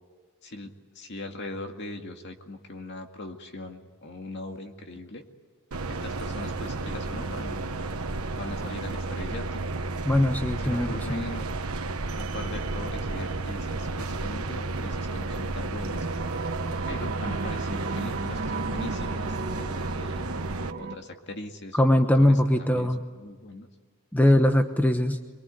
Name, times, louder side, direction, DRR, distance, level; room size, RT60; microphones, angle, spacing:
voice 1, 0.4-5.2 5.9-7.7 8.4-9.6 10.6-11.5 12.2-16.1 16.9-20.2 20.8-23.7, left 2 dB, 55° left, 4 dB, 2.2 m, -40 dB
sound 1, 5.7-20.7, right 3 dB, 75° right, 1.2 m, -32 dB
voice 2, 10.0-11.2 21.8-23.0 24.1-25.2, left 1 dB, 10° left, 6 dB, 1.0 m, -21 dB
sound 2, 15.9-21.0, right 3 dB, 50° right, 1.5 m, -36 dB
23.5 x 23.5 x 9.6 m, 1.4 s
head